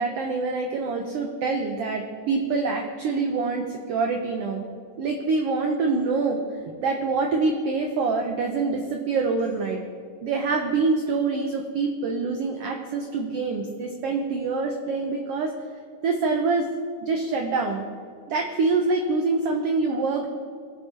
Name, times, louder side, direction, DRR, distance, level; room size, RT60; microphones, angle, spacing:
voice 1, 0.0-4.6 5.0-9.8 10.2-15.5 16.0-16.7 17.0-17.9 18.3-20.3, right 4 dB, 90° right, 3 dB, 1.3 m, -25 dB
18.5 x 7.6 x 3.2 m, 2.2 s
omnidirectional pair, 3.7 m